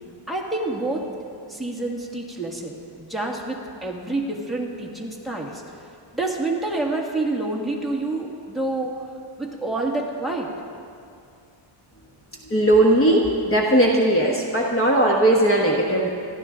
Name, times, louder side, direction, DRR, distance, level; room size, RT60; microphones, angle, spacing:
voice 1, 0.3-1.1 1.4-5.6 6.1-9.0 9.4-10.5, right 2 dB, ahead, -2 dB, 1.7 m, -28 dB
voice 2, 12.5-16.1, right 1 dB, 25° left, -1 dB, 1.2 m, -18 dB
28.0 x 12.0 x 3.8 m, 2.4 s
wide cardioid pair, 180°, 50 cm